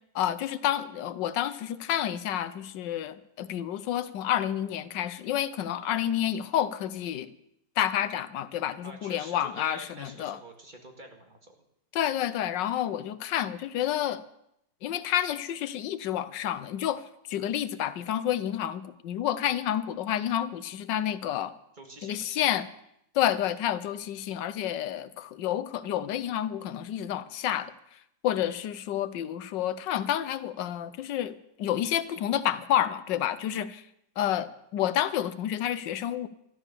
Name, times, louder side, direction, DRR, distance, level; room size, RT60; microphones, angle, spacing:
voice 1, 0.1-7.3 7.8-10.4 11.9-14.2 14.8-17.0 17.3-21.5 22.0-22.7 23.1-27.7 28.2-33.8 34.2-36.3, left 11 dB, 90° left, 15 dB, 1.5 m, -29 dB
voice 2, 8.8-11.6 21.7-22.6, right 1 dB, 25° right, 3 dB, 2.0 m, -46 dB
13.0 x 13.0 x 6.8 m, 0.77 s
omnidirectional pair, 1.9 m